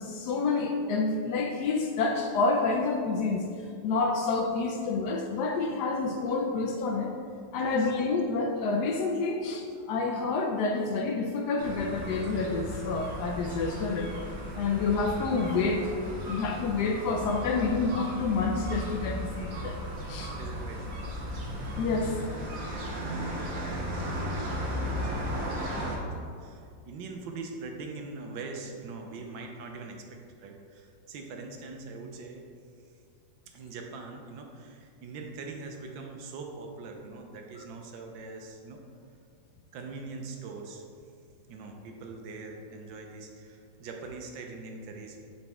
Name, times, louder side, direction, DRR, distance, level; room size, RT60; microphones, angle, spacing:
voice 1, 0.0-3.4 3.8-7.1 7.5-14.1 14.6-15.9 16.3-19.8 20.1-20.4 21.8-22.2, left 4 dB, 75° left, 3 dB, 1.0 m, -28 dB
voice 2, 7.5-7.9 20.4-21.2 22.5-32.5 33.5-38.8 39.7-40.8 41.5-45.2, right 3 dB, 80° right, 2 dB, 1.5 m, -43 dB
sound 1, 11.6-26.0, equal, 55° right, 1.3 m, -35 dB
8.8 x 4.2 x 3.5 m, 2.3 s
omnidirectional pair, 2.0 m